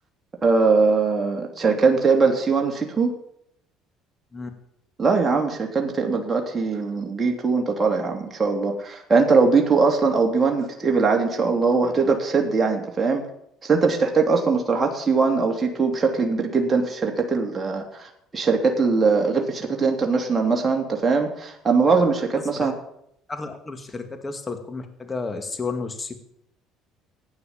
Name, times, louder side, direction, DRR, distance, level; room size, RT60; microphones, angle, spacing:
voice 1, 0.4-3.1 5.0-13.2 13.6-22.7, right 4 dB, 25° right, 1 dB, 3.0 m, -21 dB
voice 2, 23.3-26.2, left 4 dB, 25° left, 7 dB, 2.3 m, -32 dB
15.5 x 9.9 x 7.4 m, 0.74 s
hypercardioid pair, 75°, 0 cm